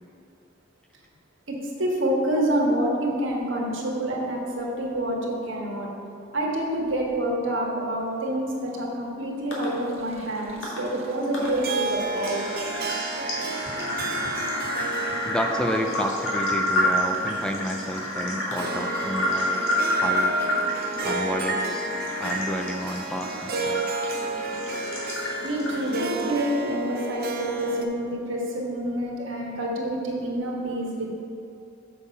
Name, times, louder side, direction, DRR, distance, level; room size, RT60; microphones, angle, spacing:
voice 1, 1.5-5.9 6.3-12.4 25.4-31.1, right 1 dB, 70° right, -2 dB, 1.6 m, -27 dB
voice 2, 7.5-8.0 8.3-8.4 15.2-19.6 20.0-20.4 21.0-21.9 22.2-23.8 26.1-26.3 29.7-29.8, equal, 5° left, 3 dB, 0.4 m, -31 dB
sound 1, 9.5-9.7 10.6-10.8 11.3-11.5 11.8-26.0, equal, 70° left, 2.0 m, -29 dB
sound 2, 9.6-26.5, equal, 30° right, 1.3 m, -44 dB
Harp, 11.4-27.8, right 2 dB, 50° right, 0.7 m, -32 dB
7.1 x 6.5 x 5.3 m, 2.7 s
head